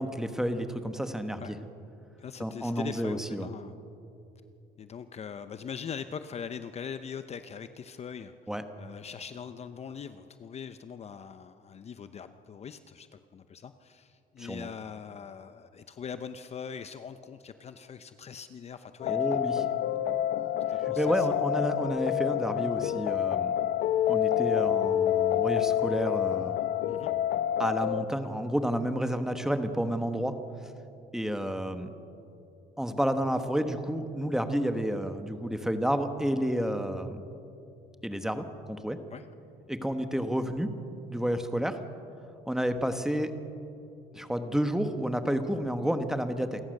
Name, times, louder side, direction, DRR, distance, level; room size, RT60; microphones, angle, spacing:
voice 1, 0.0-1.6 2.4-3.5 8.5-8.6 14.4-14.7 19.1-19.6 21.0-23.6 24.1-26.6 27.6-30.3 31.1-31.9 32.8-37.2 38.0-39.0 39.7-40.7 41.1-41.8 42.5-43.3 44.1-46.6, equal, 5° right, 8 dB, 1.4 m, -30 dB
voice 2, 2.2-3.7 4.8-8.3 8.8-19.4 20.7-21.3 26.9-27.1 39.1-39.3, left 7 dB, 40° left, 10 dB, 0.7 m, -42 dB
sound 1, 19.0-28.0, left 11 dB, 75° left, 0.9 m, -28 dB
28.0 x 14.5 x 6.6 m, 2.7 s
cardioid pair, 110°, 17 cm